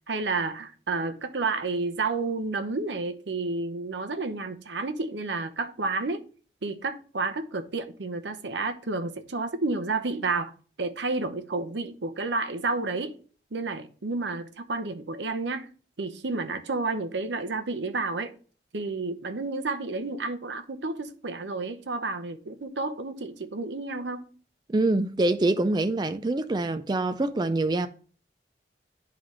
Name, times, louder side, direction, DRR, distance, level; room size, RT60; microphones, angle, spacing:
voice 1, 0.1-6.2 6.6-10.5 10.8-13.1 13.5-15.7 16.0-18.3 18.7-24.3, right 3 dB, 90° right, 0.8 m, -30 dB
voice 2, 24.7-27.9, right 2 dB, 25° right, 0.4 m, -25 dB
11.5 x 3.9 x 3.1 m
head